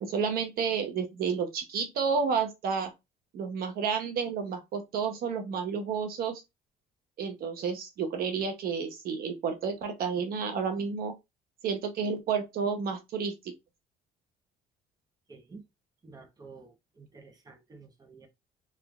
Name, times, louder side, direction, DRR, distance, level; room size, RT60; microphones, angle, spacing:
voice 1, 0.0-2.9 3.3-6.4 7.2-11.2 11.6-13.5, right 6 dB, 65° right, 0.8 m, -31 dB
voice 2, 15.3-15.6 16.0-18.3, right 4 dB, 20° right, 1.0 m, -51 dB
3.3 x 3.2 x 2.3 m
cardioid pair, 110°, 17 cm